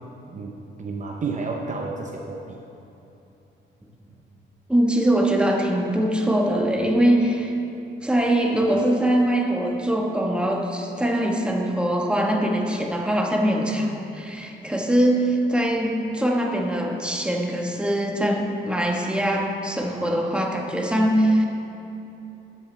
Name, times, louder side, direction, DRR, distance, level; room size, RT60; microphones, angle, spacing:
voice 1, 0.3-2.6, right 4 dB, 40° right, 1 dB, 0.7 m, -31 dB
voice 2, 4.7-7.5 8.0-21.5, right 1 dB, 5° right, 0 dB, 1.3 m, -22 dB
13.0 x 7.7 x 3.3 m, 2.9 s
cardioid pair, 90°, 20 cm